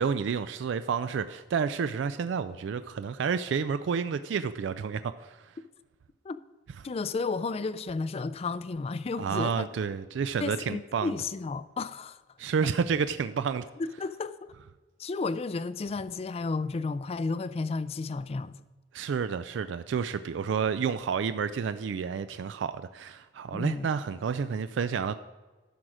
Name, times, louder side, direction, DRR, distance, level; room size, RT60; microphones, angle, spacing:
voice 1, 0.0-5.5 9.2-11.1 12.4-13.6 18.9-25.1, right 6 dB, 85° right, 0.3 m, -30 dB
voice 2, 6.8-9.7 10.4-12.2 13.8-14.5 15.0-18.6 23.5-23.9, left 4 dB, 35° left, 0.4 m, -32 dB
12.0 x 6.2 x 4.9 m
head